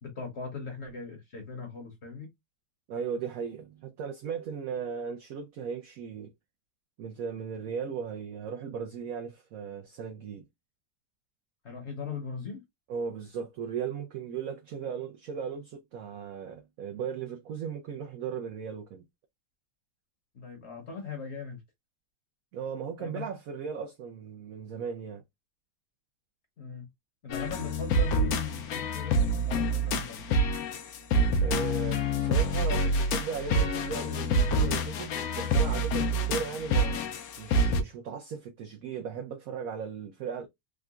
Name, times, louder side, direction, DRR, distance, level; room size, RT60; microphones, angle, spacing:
voice 1, 0.0-2.3 11.6-12.6 20.3-21.6 23.0-23.3 26.6-26.9 27.2-30.4, left 5 dB, 45° left, 0.9 m, -39 dB
voice 2, 2.9-6.3 7.0-10.4 12.9-19.0 22.5-25.2 31.4-37.0 37.4-40.5, right 6 dB, 75° right, 0.8 m, -37 dB
sound 1, 27.3-37.8, equal, 70° left, 0.9 m, -27 dB
3.7 x 2.2 x 2.4 m
omnidirectional pair, 2.0 m